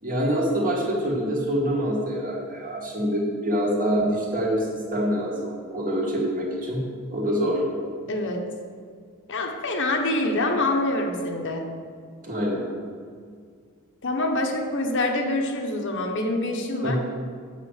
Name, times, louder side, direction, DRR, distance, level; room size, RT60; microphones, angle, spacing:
voice 1, 0.0-6.8 7.1-7.6 12.2-12.6 16.8-17.0, equal, 40° right, -3 dB, 2.3 m, -25 dB
voice 2, 8.1-8.4 9.3-11.7 14.0-17.0, left 2 dB, 60° left, 3 dB, 1.1 m, -25 dB
8.5 x 6.9 x 6.5 m, 2.1 s
head